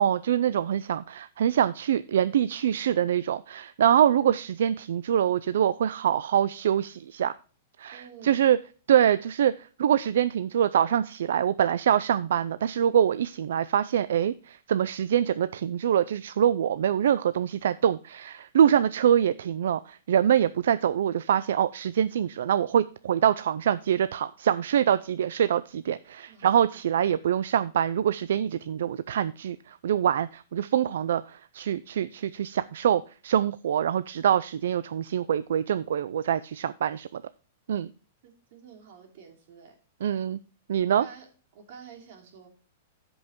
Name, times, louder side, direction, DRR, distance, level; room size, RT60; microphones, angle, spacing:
voice 1, 0.0-7.3 7.8-8.6 8.9-37.2 37.7-37.9 40.0-40.4 40.7-41.1, right 9 dB, 80° right, 14 dB, 0.4 m, -24 dB
voice 2, 7.9-8.5 18.6-18.8 26.3-26.8 38.2-39.7 40.9-41.3 41.5-42.5, right 7 dB, 55° right, 2 dB, 3.1 m, -49 dB
15.5 x 5.4 x 3.0 m, 0.38 s
supercardioid pair, 155°, 0 cm